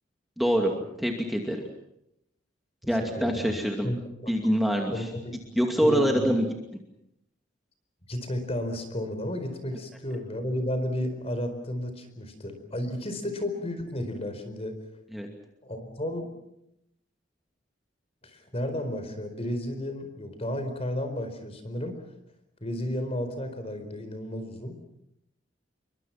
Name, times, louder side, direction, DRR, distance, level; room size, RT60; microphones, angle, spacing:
voice 1, 0.4-1.6 2.9-3.9 4.3-5.1 5.6-6.4 15.1-15.3, equal, ahead, 1 dB, 2.5 m, -25 dB
voice 2, 2.8-3.6 3.8-4.0 4.2-4.3 4.9-5.3 5.8-6.3 8.1-14.8 15.6-16.3 18.2-22.0 22.6-24.8, left 1 dB, 35° left, 8 dB, 4.6 m, -33 dB
29.5 x 24.0 x 6.0 m, 0.81 s
head